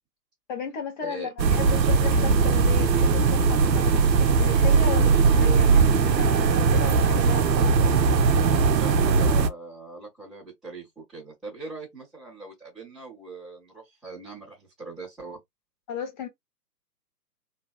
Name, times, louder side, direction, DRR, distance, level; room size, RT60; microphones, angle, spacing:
voice 1, 0.5-8.1 15.9-16.3, left 7 dB, 30° left, 1.0 m, -35 dB
voice 2, 1.0-1.3 1.6-2.2 8.7-15.4, right 3 dB, ahead, 0.8 m, -41 dB
sound 1, 1.4-9.5, right 5 dB, 85° right, 0.6 m, -20 dB
3.1 x 2.6 x 2.3 m
figure-of-eight pair, 130°, 49 cm